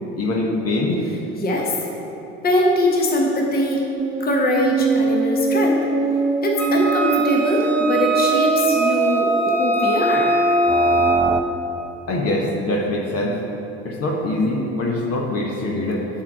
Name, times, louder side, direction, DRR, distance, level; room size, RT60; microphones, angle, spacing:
voice 1, 0.1-1.0 12.1-13.4 13.8-16.1, left 2 dB, 45° left, 0 dB, 1.3 m, -23 dB
voice 2, 1.4-1.7 2.4-3.8 4.2-5.8 6.4-10.3, left 1 dB, 25° left, -1 dB, 1.2 m, -22 dB
sound 1, 4.0-11.4, right 3 dB, 10° right, 0.4 m, -20 dB
Wind instrument woodwind instrument, 6.6-11.3, right 1 dB, 5° left, 1.0 m, -26 dB
7.3 x 4.8 x 6.2 m, 3.0 s
hypercardioid pair, 65°, 33 cm